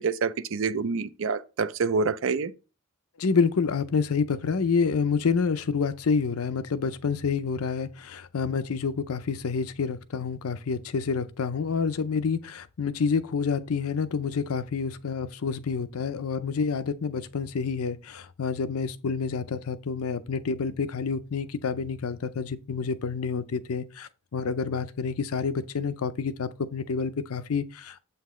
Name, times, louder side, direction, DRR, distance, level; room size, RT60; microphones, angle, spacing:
voice 1, 0.0-2.5, right 4 dB, 65° right, 0.5 m, -27 dB
voice 2, 3.2-28.0, left 5 dB, 85° left, 0.5 m, -28 dB
7.6 x 5.7 x 3.1 m
head